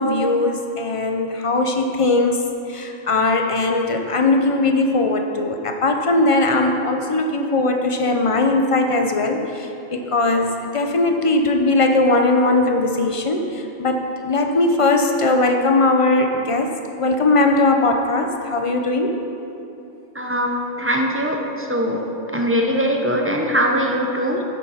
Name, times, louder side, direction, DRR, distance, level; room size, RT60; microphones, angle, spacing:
voice 1, 0.0-2.4 2.7-19.1 24.3-24.4, left 2 dB, 35° left, 3 dB, 0.5 m, -19 dB
voice 2, 20.1-22.0 22.3-24.4, equal, 15° right, 1 dB, 0.5 m, -21 dB
9.0 x 7.1 x 5.7 m, 2.8 s
omnidirectional pair, 1.4 m